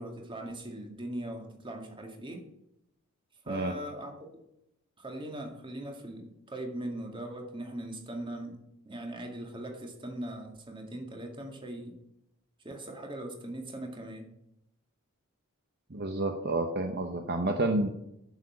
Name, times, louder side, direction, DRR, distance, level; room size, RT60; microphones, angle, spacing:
voice 1, 0.0-2.5 3.4-4.2 5.0-8.6 8.9-12.0 12.6-14.3, right 1 dB, 20° right, 3 dB, 2.0 m, -40 dB
voice 2, 15.9-17.9, right 2 dB, 45° right, 5 dB, 1.0 m, -29 dB
10.5 x 7.0 x 8.4 m, 0.82 s
head